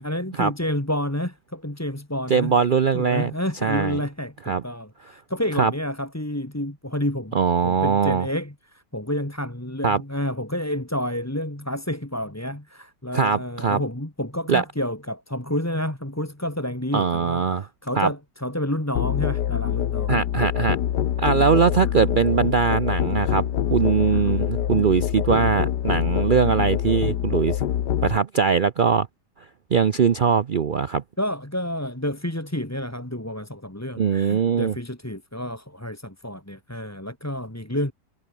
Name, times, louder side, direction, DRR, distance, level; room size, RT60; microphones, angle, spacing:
voice 1, 0.0-2.6 2.9-20.2 21.4-21.7 31.2-37.9, left 1 dB, 10° left, 2.4 m, -29 dB
voice 2, 2.3-3.3 3.6-4.0 4.5-4.6 5.6-5.7 7.3-8.3 9.8-10.0 13.1-13.8 14.5-14.6 16.9-17.7 17.9-18.1 20.1-20.8 21.2-27.6 28.0-29.1 29.7-31.0 34.0-34.7, right 6 dB, 80° right, 0.4 m, -21 dB
Musical instrument, 19.0-28.2, left 11 dB, 75° left, 1.6 m, -25 dB
omnidirectional pair, 1.8 m